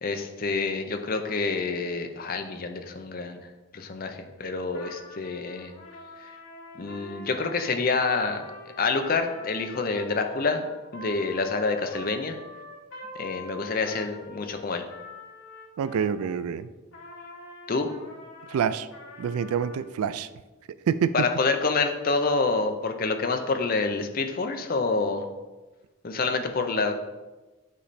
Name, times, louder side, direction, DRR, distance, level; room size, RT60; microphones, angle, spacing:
voice 1, 0.0-3.4 3.7-5.7 6.8-8.4 8.8-10.7 10.9-12.4 13.2-14.8 17.7-17.9 21.1-25.3 26.0-26.9, left 4 dB, 40° left, 6 dB, 0.5 m, -27 dB
Trumpet, 4.7-16.4 16.9-19.9, left 2 dB, 75° left, 1.5 m, -45 dB
voice 2, 15.8-16.7 18.5-18.9 19.2-20.3 20.9-21.3, right 7 dB, 90° right, 14 dB, 0.3 m, -26 dB
8.4 x 3.2 x 4.1 m, 1.2 s
head